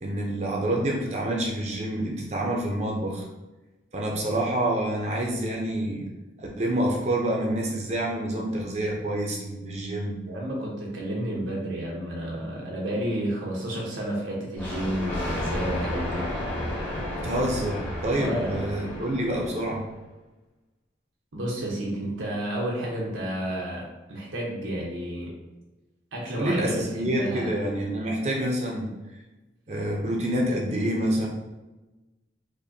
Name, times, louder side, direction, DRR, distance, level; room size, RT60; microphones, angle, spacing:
voice 1, 0.0-3.3 3.9-6.1 6.4-10.2 17.2-19.8 26.3-28.9 29.7-31.3, right 1 dB, 35° right, -1 dB, 0.5 m, -27 dB
voice 2, 10.2-16.2 18.1-18.7 21.3-25.3 26.1-27.5, right 1 dB, 90° right, -3 dB, 0.8 m, -31 dB
Thunder, 14.6-19.9, left 1 dB, 10° left, 0.7 m, -32 dB
5.0 x 2.1 x 2.7 m, 1.1 s
head